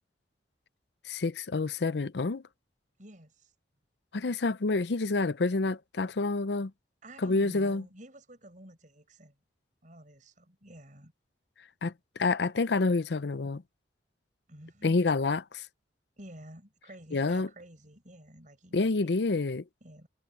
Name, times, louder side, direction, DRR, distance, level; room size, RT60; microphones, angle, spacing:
voice 1, 1.1-2.4 4.1-6.7 7.2-7.8 11.8-11.9 12.2-13.6 14.8-15.7 17.1-17.5 18.7-19.6, left 3 dB, 65° left, 0.6 m, -28 dB
voice 2, 3.0-3.5 7.0-9.4 9.8-11.1 12.2-12.3 14.5-15.0 16.2-18.9 19.8-20.1, right 1 dB, 45° right, 7.3 m, -50 dB
head